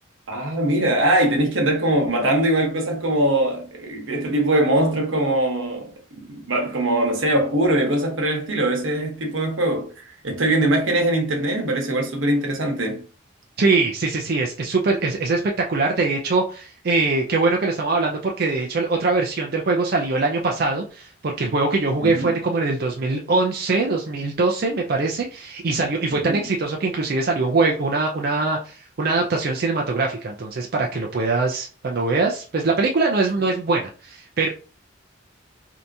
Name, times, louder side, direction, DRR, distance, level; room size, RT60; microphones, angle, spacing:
voice 1, 0.3-13.0 22.0-22.4 26.1-26.4, right 1 dB, 85° right, 1.0 m, -22 dB
voice 2, 13.6-34.5, right 3 dB, 50° right, 0.4 m, -22 dB
3.3 x 2.8 x 2.6 m
head